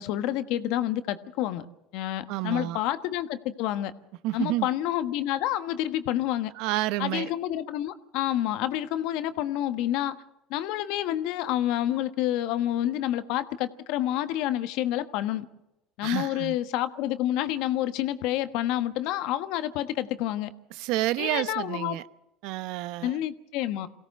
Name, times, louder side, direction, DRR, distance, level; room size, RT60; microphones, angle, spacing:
voice 1, 0.0-1.7 1.9-3.9 4.3-6.5 7.0-10.2 10.5-15.5 16.0-20.5 21.2-22.0 23.0-23.9, left 13 dB, 70° left, 1.3 m, -28 dB
voice 2, 2.3-2.8 4.2-4.7 6.6-7.3 16.0-16.6 20.7-22.0 22.4-23.2, right 16 dB, 70° right, 0.8 m, -29 dB
23.5 x 17.0 x 6.6 m
supercardioid pair, 90°, 0 cm